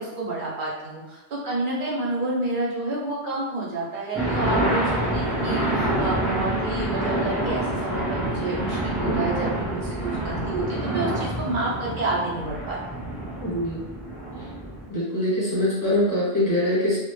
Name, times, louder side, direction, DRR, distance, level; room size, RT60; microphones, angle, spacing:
voice 1, 0.0-13.0, right 2 dB, 60° right, -4 dB, 0.5 m, -29 dB
sound 1, 4.1-14.9, right 1 dB, ahead, 0.5 m, -27 dB
voice 2, 13.4-13.8 14.9-17.0, left 1 dB, 20° left, -9 dB, 0.9 m, -23 dB
2.1 x 2.0 x 2.9 m, 1.1 s
omnidirectional pair, 1.2 m